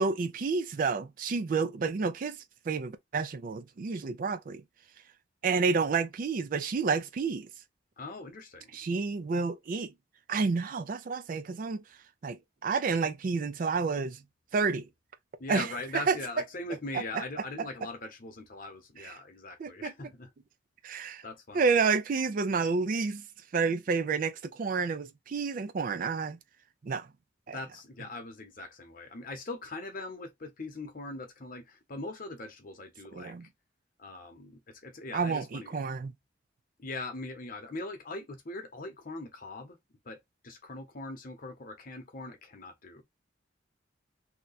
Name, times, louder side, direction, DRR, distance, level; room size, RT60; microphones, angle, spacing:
voice 1, 0.0-4.6 5.4-7.5 8.7-9.9 10.3-11.8 12.2-14.2 14.5-14.9 15.5-15.7 15.9-16.2 17.6-17.7 19.0-19.1 19.6-19.9 20.8-21.2 21.5-23.2 23.5-26.4 26.8-27.1 27.5-27.6 33.1-33.5 35.1-36.1, right 4 dB, 45° right, 0.4 m, -30 dB
voice 2, 8.0-8.8 15.4-20.3 21.2-21.7 27.5-33.4 34.0-35.8 36.8-39.8 40.0-40.2 40.4-43.0, left 2 dB, 50° left, 0.8 m, -41 dB
2.8 x 2.2 x 3.9 m
head